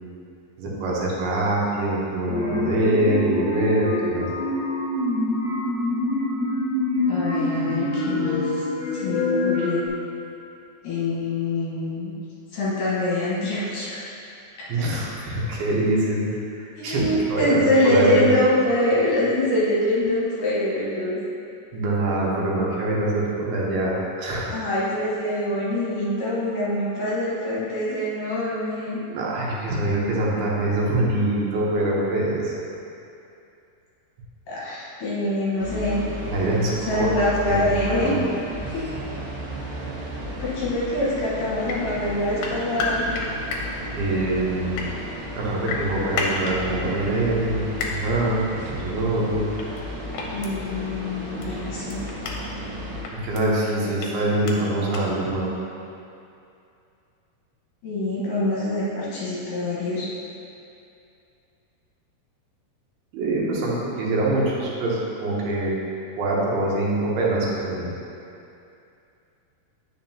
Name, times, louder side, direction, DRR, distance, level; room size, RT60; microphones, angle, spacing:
voice 1, 0.6-4.3 14.7-16.3 16.6-18.3 21.7-24.6 29.1-32.5 36.3-37.1 37.5-38.2 43.9-44.9 45.3-48.4 48.7-49.5 53.1-55.5 63.1-65.7 66.2-67.9, right 2 dB, 85° right, -4 dB, 3.0 m, -24 dB
sound 1, 2.3-9.9, left 2 dB, 45° left, 1.2 m, -25 dB
voice 2, 7.1-8.6 8.9-9.9 10.8-12.1 12.5-14.1 14.6-14.9 16.8-21.2 24.5-29.0 34.5-36.0 36.8-38.2 38.7-38.9 40.4-43.1 50.3-52.0 53.8-53.9 57.8-60.1, left 1 dB, 65° left, -8 dB, 2.8 m, -24 dB
sound 2, 35.6-53.0, left 1 dB, 55° right, 1.5 m, -34 dB
sound 3, 41.7-41.8 42.4-43.6 44.5-44.9 45.7-46.6 47.8-47.9 49.6-49.8 50.1-50.5 51.4-51.5 51.9-52.4 53.0-53.4 54.0-54.1 54.5-54.6 54.9-55.0, left 5 dB, 90° left, 2.7 m, -29 dB
8.8 x 6.4 x 2.8 m, 2.6 s
omnidirectional pair, 4.3 m